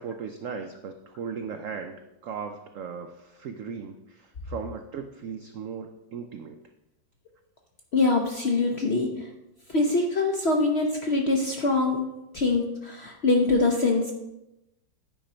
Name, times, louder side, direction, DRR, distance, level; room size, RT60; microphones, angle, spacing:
voice 1, 0.0-6.6, right 6 dB, 85° right, 6 dB, 0.7 m, -37 dB
voice 2, 7.9-9.3 9.7-12.0 12.3-14.1, left 3 dB, 55° left, 2 dB, 0.7 m, -24 dB
9.6 x 5.1 x 4.3 m, 0.92 s
omnidirectional pair, 2.0 m